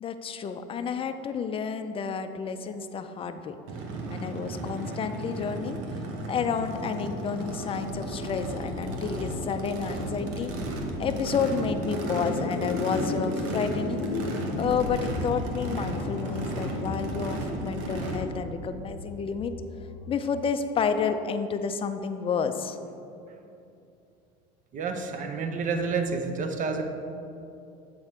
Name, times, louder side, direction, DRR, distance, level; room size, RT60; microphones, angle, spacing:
voice 1, 0.0-3.6 4.1-5.8 6.3-10.5 11.0-14.1 14.6-19.5 20.1-22.8, left 6 dB, 25° left, 8 dB, 0.4 m, -30 dB
Race car auto racing / Idling / Accelerating revving vroom, 3.7-18.2, right 2 dB, 65° right, 1.0 m, -34 dB
sound 1, 7.8-20.6, left 5 dB, 80° left, 0.5 m, -37 dB
voice 2, 24.7-26.8, right 4 dB, 40° right, 6 dB, 0.8 m, -29 dB
7.6 x 4.1 x 4.6 m, 2.7 s
supercardioid pair, 105°, 21 cm